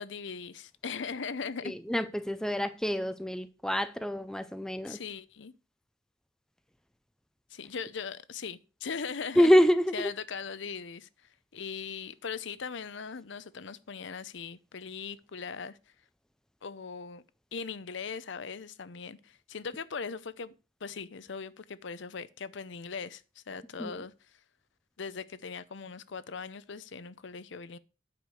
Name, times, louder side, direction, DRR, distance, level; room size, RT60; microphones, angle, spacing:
voice 1, 0.0-1.7 4.8-5.5 7.5-9.5 9.9-11.1 11.5-15.8 16.6-17.2 17.5-20.6 20.8-24.4 25.0-27.8, left 5 dB, 65° left, 0.6 m, -39 dB
voice 2, 1.6-5.0 9.4-10.1 23.8-23.9, equal, 5° left, 0.5 m, -26 dB
9.2 x 5.1 x 6.3 m
head